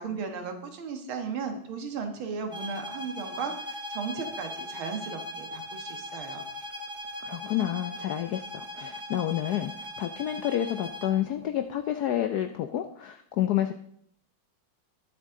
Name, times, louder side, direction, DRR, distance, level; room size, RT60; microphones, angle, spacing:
voice 1, 0.0-6.4, right 5 dB, 75° right, 5 dB, 2.2 m, -36 dB
sound 1, 2.5-11.2, left 1 dB, 20° right, 1.0 m, -39 dB
voice 2, 7.2-13.7, left 11 dB, 75° left, 8 dB, 0.9 m, -29 dB
19.5 x 7.4 x 3.7 m, 0.68 s
omnidirectional pair, 2.3 m